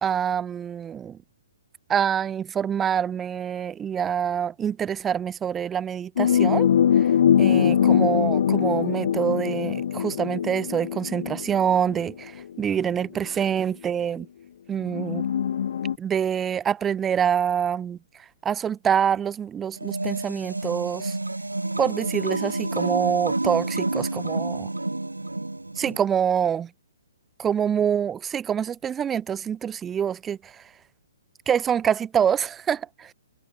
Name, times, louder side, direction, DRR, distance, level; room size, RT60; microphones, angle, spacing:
voice 1, 0.0-1.2 1.9-6.7 7.0-7.1 7.4-14.3 14.7-15.2 16.0-18.0 18.4-21.2 21.8-24.7 25.8-26.7 27.4-30.6 31.5-33.1, right 8 dB, 15° right, 1.0 m, -26 dB
sound 1, 6.2-12.0 13.0-13.1 14.9-16.0, left 9 dB, 50° left, 1.7 m, -22 dB
sound 2, 19.8-26.1, right 2 dB, 80° right, 5.4 m, -29 dB
figure-of-eight pair, 125°, 0 cm